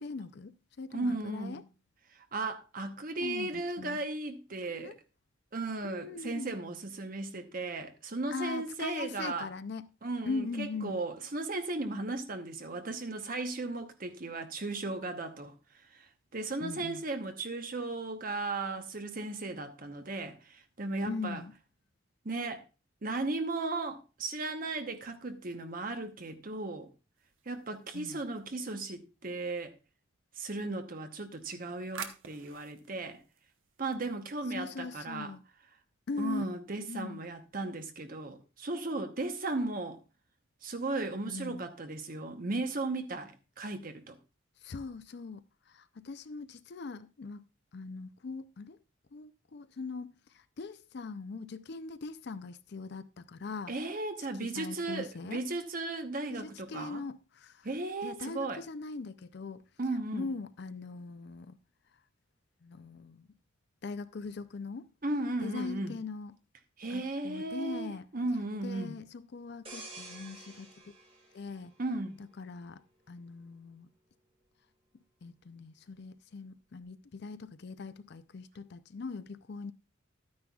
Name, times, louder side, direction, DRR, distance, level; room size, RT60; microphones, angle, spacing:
voice 1, 0.0-1.6 3.2-4.0 4.7-5.0 5.8-6.6 8.3-9.8 10.3-11.0 16.6-17.0 21.0-21.5 27.9-28.2 34.5-35.4 36.1-36.4 36.8-37.2 41.3-41.7 44.6-47.5 47.7-48.8 49.1-53.7 54.4-55.4 56.3-57.7 58.0-59.6 60.1-61.6 62.6-63.3 63.8-64.9 65.4-66.4 66.9-68.1 68.6-70.7 71.3-71.7 72.4-72.8 73.1-73.9 75.2-79.7, left 4 dB, 55° left, 0.5 m, -41 dB
voice 2, 0.9-1.6 2.3-5.0 5.5-9.5 10.0-15.5 15.9-16.0 16.3-21.4 22.2-22.6 23.0-26.9 27.5-29.7 30.4-33.2 33.8-35.3 36.2-40.0 40.6-44.2 53.7-57.0 57.6-58.6 59.8-60.3 65.0-65.9 66.8-68.9 71.8-72.1, right 2 dB, 45° right, 0.9 m, -36 dB
sound 1, 27.2-28.9 31.2-34.5, right 6 dB, 80° right, 1.0 m, -49 dB
sound 2, 69.6-72.3 72.8-73.0, right 2 dB, 30° right, 2.0 m, -49 dB
12.0 x 9.5 x 2.4 m
head